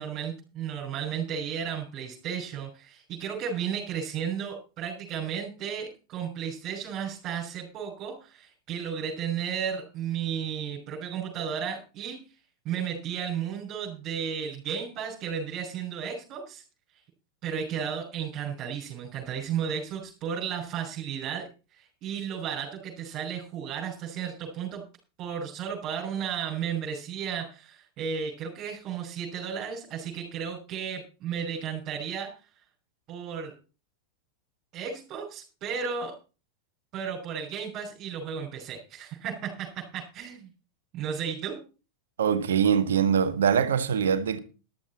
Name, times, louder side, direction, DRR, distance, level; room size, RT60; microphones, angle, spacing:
voice 1, 0.0-12.2 12.6-16.6 17.4-24.8 25.2-32.3 33.1-33.5 34.7-36.1 36.9-39.7 39.9-40.5 40.9-41.6, right 7 dB, 35° right, 5.8 m, -34 dB
voice 2, 42.2-44.4, right 7 dB, 65° right, 1.6 m, -23 dB
13.5 x 13.0 x 4.3 m
figure-of-eight pair, 90°, 0 cm